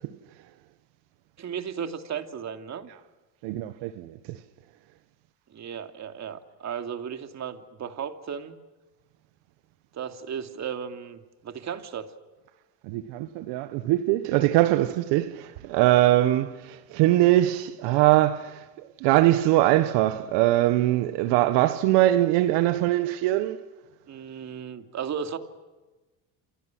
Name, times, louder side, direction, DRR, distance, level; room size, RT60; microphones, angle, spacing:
voice 1, 1.4-2.9 5.5-8.6 9.9-12.2 24.1-25.4, right 7 dB, 40° right, 2.8 m, -35 dB
voice 2, 3.4-4.4 12.9-18.6 19.0-23.6, right 15 dB, 70° right, 1.4 m, -22 dB
28.5 x 28.0 x 6.2 m
supercardioid pair, 105°, 43 cm